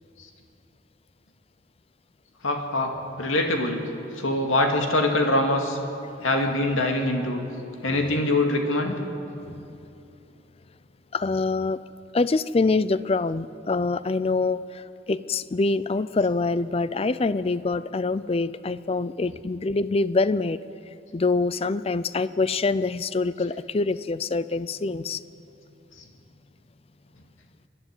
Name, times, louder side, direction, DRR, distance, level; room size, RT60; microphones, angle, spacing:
voice 1, 2.4-3.8 4.2-5.8 6.2-7.4 7.8-9.0 26.0-26.1, left 1 dB, 85° left, 3 dB, 2.3 m, -24 dB
voice 2, 9.4-9.8 11.1-11.8 12.1-20.6 21.1-25.2, left 3 dB, 30° left, 16 dB, 0.4 m, -25 dB
24.5 x 11.0 x 9.7 m, 2.8 s
head